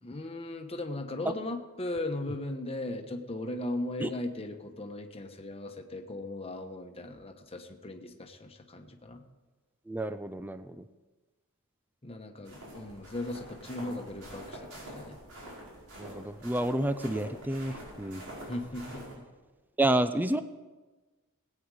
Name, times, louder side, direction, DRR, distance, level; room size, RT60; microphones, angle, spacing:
voice 1, 0.0-9.2 12.0-15.2 18.5-19.2, left 2 dB, 25° left, 4 dB, 1.1 m, -38 dB
voice 2, 9.9-10.9 16.0-18.2 19.8-20.4, right 1 dB, 10° right, 11 dB, 0.4 m, -30 dB
sound 1, 12.5-19.1, right 1 dB, 80° right, 5.3 m, -46 dB
20.0 x 8.8 x 4.9 m, 1.2 s
head